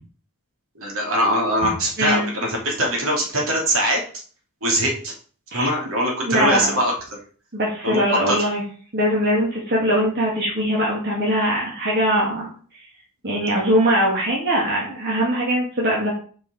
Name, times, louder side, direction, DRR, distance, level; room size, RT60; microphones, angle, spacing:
voice 1, 0.7-4.0 4.6-5.1 5.5-6.9 7.8-8.4, equal, 65° right, -1 dB, 2.9 m, -22 dB
voice 2, 6.2-6.8 7.5-8.6 8.9-12.5 13.2-16.1, equal, 50° right, -4 dB, 2.4 m, -21 dB
7.3 x 5.0 x 5.1 m, 0.42 s
head